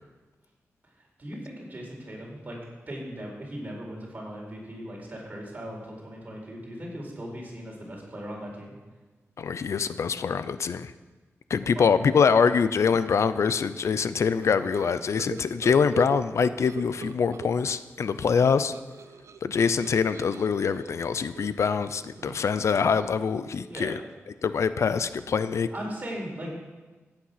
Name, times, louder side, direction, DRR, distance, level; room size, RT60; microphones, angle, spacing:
voice 1, 1.2-2.6 2.9-8.7 11.7-12.4 23.7-24.0 25.7-26.6, equal, 35° right, -2 dB, 4.3 m, -38 dB
voice 2, 9.4-10.9 11.5-18.7 19.4-24.0 24.4-25.7, left 6 dB, 75° left, 13 dB, 0.5 m, -24 dB
sound 1, 14.3-17.8 18.1-22.6, right 6 dB, 75° right, 0.6 m, -41 dB
15.5 x 8.9 x 5.8 m, 1.3 s
wide cardioid pair, 125°, 5 cm